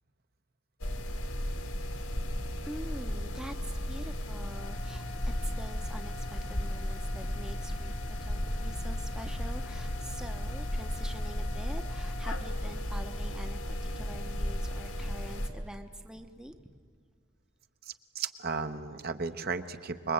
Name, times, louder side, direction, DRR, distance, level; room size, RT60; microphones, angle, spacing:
sound 1, 0.8-15.5, left 1 dB, 85° left, 2.3 m, -34 dB
voice 1, 2.5-16.7, equal, 5° right, 7 dB, 0.8 m, -46 dB
voice 2, 17.9-20.1, right 4 dB, 45° right, 9 dB, 0.9 m, -34 dB
26.5 x 22.0 x 8.7 m, 2.1 s
head